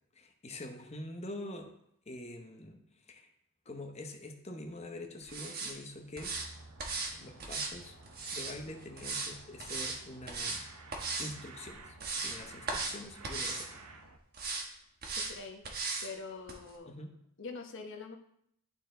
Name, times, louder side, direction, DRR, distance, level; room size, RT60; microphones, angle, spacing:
voice 1, 0.2-1.7 2.1-2.8 3.1-3.3 3.7-6.3 7.2-7.9 8.3-10.6 11.2-13.8 16.9-17.1, left 1 dB, 30° left, 3 dB, 0.9 m, -45 dB
sound 1, 5.3-5.7 6.2-6.5 6.8-7.1 7.4-8.5 9.0-9.3 9.6-10.0 10.3-10.6 10.9-11.3 11.7-12.4 12.7-13.0 13.2-13.7 14.3-14.6 15.0-15.3 15.6-16.1 16.5-16.6, right 3 dB, 45° right, 1.2 m, -37 dB
sound 2, 6.3-14.2, right 2 dB, 80° right, 0.8 m, -53 dB
voice 2, 15.2-15.6 16.0-16.9 17.4-18.2, left 4 dB, 55° left, 3 dB, 1.1 m, -44 dB
11.5 x 4.5 x 3.8 m, 0.73 s
head